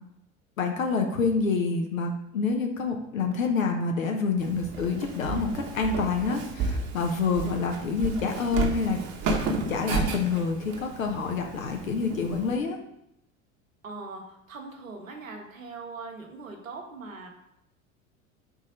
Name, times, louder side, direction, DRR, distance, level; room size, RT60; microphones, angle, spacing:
voice 1, 0.6-9.0 9.7-12.8, left 4 dB, 75° left, 3 dB, 0.8 m, -27 dB
Walk footsteps, 4.4-12.5, right 4 dB, 45° right, 1.1 m, -32 dB
voice 2, 13.8-17.3, right 3 dB, 80° right, 2 dB, 1.2 m, -41 dB
4.9 x 4.1 x 5.0 m, 0.79 s
figure-of-eight pair, 75°, 40 cm